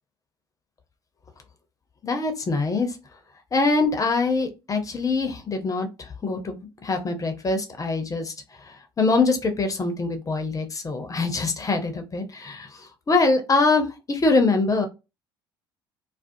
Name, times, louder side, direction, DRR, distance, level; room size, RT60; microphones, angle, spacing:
voice 1, 2.0-2.9 3.5-5.9 6.2-8.3 9.0-12.7 13.1-14.9, left 3 dB, 30° left, 6 dB, 0.7 m, -23 dB
2.4 x 2.2 x 2.6 m, 0.26 s
hypercardioid pair, 55°, 12 cm